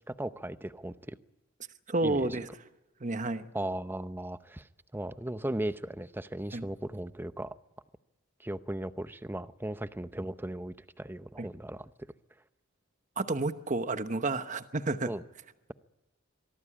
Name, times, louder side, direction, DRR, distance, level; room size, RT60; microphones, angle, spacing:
voice 1, 0.1-1.1 2.0-2.4 3.5-4.7 4.9-7.5 8.4-11.9 15.1-15.2, right 1 dB, 10° right, 13 dB, 0.7 m, -37 dB
voice 2, 1.9-2.5 3.0-3.4 6.5-6.7 11.4-11.5 13.2-15.1, right 2 dB, 40° right, 11 dB, 1.0 m, -30 dB
24.0 x 17.5 x 8.6 m, 1.1 s
head